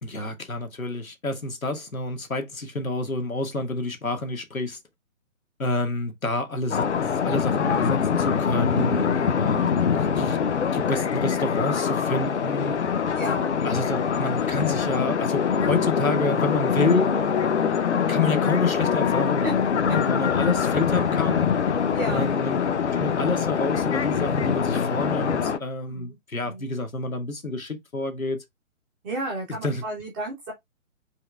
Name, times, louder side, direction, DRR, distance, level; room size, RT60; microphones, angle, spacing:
voice 1, 0.0-4.8 5.6-9.6 9.9-10.4 10.7-12.8 13.6-17.1 18.1-21.5 22.1-22.6 22.9-28.4 29.6-29.8, left 2 dB, 85° left, 1.6 m, -28 dB
sound 1, 6.7-25.6, left 7 dB, 55° left, 0.8 m, -24 dB
voice 2, 8.7-9.2 9.5-9.9 13.1-13.5 19.4-19.5 21.9-22.3 25.8-26.2 26.4-26.7 29.0-30.5, right 2 dB, 5° right, 0.5 m, -33 dB
4.6 x 3.3 x 3.3 m
figure-of-eight pair, 130°, 40 cm